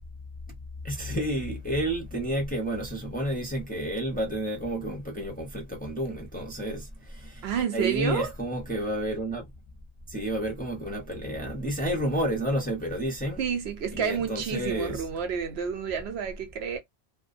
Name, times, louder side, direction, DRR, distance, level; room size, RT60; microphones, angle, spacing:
voice 1, 0.8-7.5 7.7-9.5 10.1-13.4 13.9-15.0, right 1 dB, 10° left, 0.5 m, -30 dB
voice 2, 7.4-8.3 13.4-16.8, right 7 dB, 75° right, 0.9 m, -29 dB
2.4 x 2.1 x 2.4 m
omnidirectional pair, 1.1 m